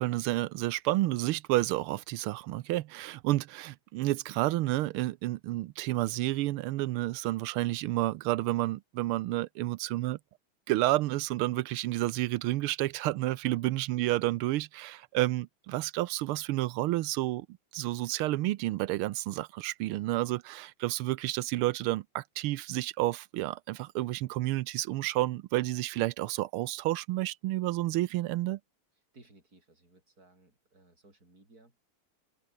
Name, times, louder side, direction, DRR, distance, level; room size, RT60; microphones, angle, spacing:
voice 1, 0.0-10.2 10.7-17.5 17.7-28.6, right 16 dB, 85° right, 1.6 m, -30 dB
voice 2, 13.5-13.8 29.1-31.8, right 2 dB, 45° right, 6.8 m, -59 dB
omnidirectional pair, 2.3 m